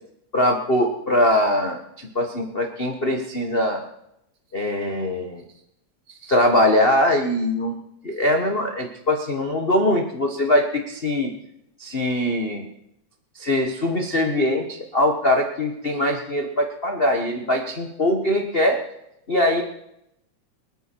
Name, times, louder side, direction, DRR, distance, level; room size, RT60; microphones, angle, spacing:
voice 1, 0.3-3.8 4.5-5.4 6.1-7.8 8.0-11.3 11.8-12.6 13.3-18.8 19.3-19.6, left 1 dB, 80° left, 2 dB, 0.5 m, -22 dB
25.0 x 9.2 x 4.6 m, 0.81 s
omnidirectional pair, 3.4 m